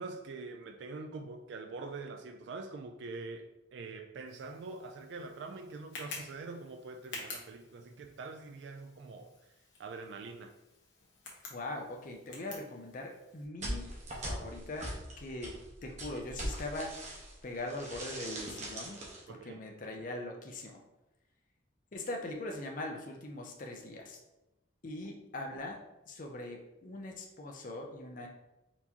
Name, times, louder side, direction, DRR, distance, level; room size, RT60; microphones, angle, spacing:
voice 1, 0.0-9.3 9.8-10.5 19.3-19.6 25.0-25.2, right 3 dB, 65° right, 5 dB, 0.3 m, -44 dB
Tick, 4.3-13.4, left 3 dB, 65° left, 1.2 m, -50 dB
voice 2, 11.5-13.9 14.3-14.9 15.2-15.6 15.8-19.0 19.3-20.8 21.9-24.2 24.8-25.8 26.1-28.3, left 2 dB, 45° left, 1 dB, 0.6 m, -41 dB
Tomb Escape (no breath), 13.6-17.4 17.7-19.2, right 1 dB, 40° right, 1.1 m, -41 dB
4.4 x 4.1 x 2.8 m, 0.93 s
head